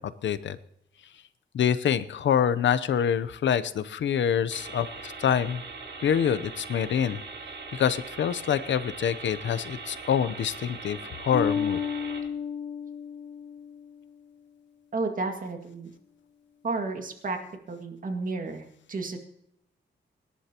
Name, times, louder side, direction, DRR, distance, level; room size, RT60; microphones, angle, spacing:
voice 1, 0.2-0.6 1.5-5.6 6.0-7.2 7.7-11.8, left 8 dB, 80° left, 14 dB, 0.7 m, -26 dB
sound 1, 4.5-12.2, right 4 dB, 85° right, 6.9 m, -41 dB
Bass guitar, 11.3-14.0, left 6 dB, 40° left, 2.2 m, -32 dB
voice 2, 14.9-15.9 16.6-17.4 17.7-19.2, right 3 dB, 45° right, 4 dB, 2.1 m, -32 dB
25.0 x 11.5 x 2.9 m, 0.75 s
wide cardioid pair, 125°, 19 cm